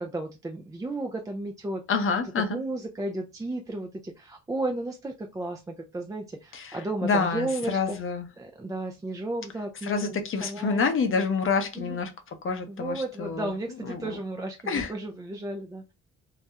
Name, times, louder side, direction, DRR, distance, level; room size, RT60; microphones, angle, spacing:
voice 1, 0.0-1.8 2.4-8.0 8.4-10.8 11.7-12.0 12.7-15.9, right 2 dB, 10° right, 0.3 m, -34 dB
voice 2, 1.9-2.6 6.5-6.8 7.0-8.3 9.8-12.1 12.4-13.5 13.9-14.2 14.7-14.9, left 5 dB, 45° left, 0.6 m, -27 dB
2.3 x 2.0 x 2.7 m
cardioid pair, 90°, 30 cm